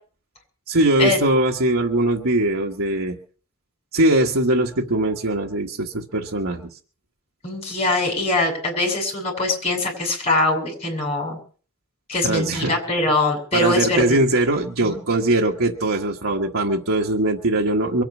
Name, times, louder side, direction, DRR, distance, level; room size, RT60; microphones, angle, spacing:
voice 1, 0.7-3.2 3.9-6.7 12.2-12.8 13.5-18.0, right 1 dB, 90° right, 0 dB, 1.4 m, -21 dB
voice 2, 7.4-11.4 12.1-14.2 14.8-15.0, left 2 dB, 30° left, 1 dB, 7.1 m, -22 dB
23.0 x 8.9 x 6.1 m, 0.42 s
head